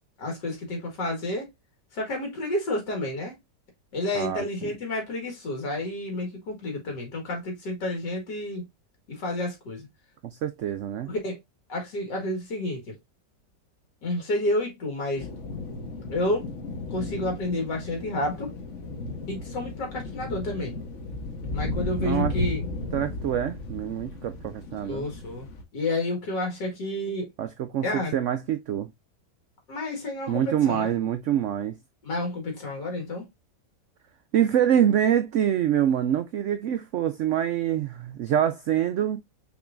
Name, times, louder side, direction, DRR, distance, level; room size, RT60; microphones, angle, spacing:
voice 1, 0.2-1.5 1.9-3.3 3.9-8.7 9.1-9.9 11.0-11.4 11.7-13.0 14.0-15.3 16.1-16.5 16.9-18.5 19.3-20.8 21.5-22.6 24.8-25.5 25.7-27.3 27.8-28.1 29.7-30.9 32.0-33.3, left 1 dB, 75° left, 2.5 m, -30 dB
voice 2, 10.2-11.1 22.0-22.3 22.9-25.1 27.4-28.9 30.3-31.8 34.3-39.2, right 10 dB, 90° right, 0.6 m, -25 dB
sound 1, 15.2-25.6, left 2 dB, 50° left, 1.1 m, -34 dB
6.0 x 3.8 x 2.3 m
omnidirectional pair, 1.9 m